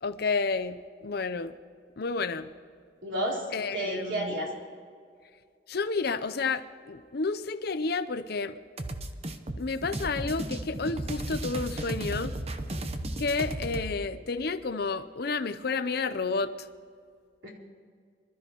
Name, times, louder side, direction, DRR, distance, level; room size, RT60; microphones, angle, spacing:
voice 1, 0.0-1.5 2.0-2.5 3.5-4.3 5.7-8.6 9.6-12.3 13.2-16.5, left 4 dB, 60° left, 12 dB, 0.7 m, -30 dB
voice 2, 3.0-3.4 3.7-4.5 17.4-17.5, right 1 dB, 75° right, -3 dB, 4.0 m, -31 dB
sound 1, 8.8-13.9, right 1 dB, 35° right, 0.9 m, -34 dB
25.5 x 13.0 x 3.0 m, 2.1 s
head